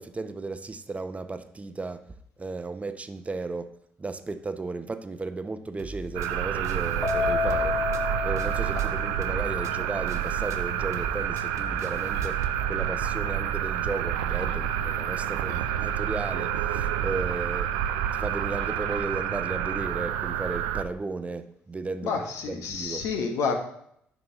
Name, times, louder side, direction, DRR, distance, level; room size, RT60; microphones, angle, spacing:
voice 1, 0.0-2.0 2.4-7.8 8.2-12.4 12.7-17.7 18.1-23.0, right 3 dB, 25° right, 0.7 m, -35 dB
sound 1, 5.8-12.6, right 2 dB, 70° right, 0.8 m, -42 dB
sound 2, 6.1-20.8, right 10 dB, 85° right, 0.4 m, -28 dB
Keyboard (musical), 7.0-9.5, left 5 dB, 25° left, 1.1 m, -30 dB
voice 2, 22.0-23.6, left 5 dB, 75° left, 1.3 m, -29 dB
9.4 x 6.0 x 3.0 m
hypercardioid pair, 55°, 5 cm